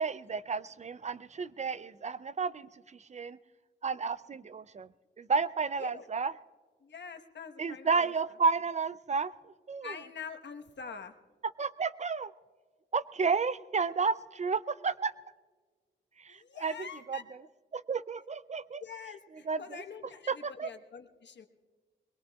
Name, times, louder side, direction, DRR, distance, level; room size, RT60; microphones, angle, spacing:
voice 1, 0.0-3.4 3.8-4.9 5.2-6.3 7.6-10.0 11.6-12.3 12.9-15.1 16.2-17.2 17.7-18.8 19.5-19.8 20.3-20.7, right 5 dB, 35° right, 16 dB, 0.4 m, -32 dB
voice 2, 6.8-8.1 9.8-11.2 16.3-17.2 18.8-21.5, left 6 dB, 65° left, 6 dB, 1.1 m, -45 dB
23.0 x 21.5 x 2.3 m, 1.4 s
wide cardioid pair, 90°, 20 cm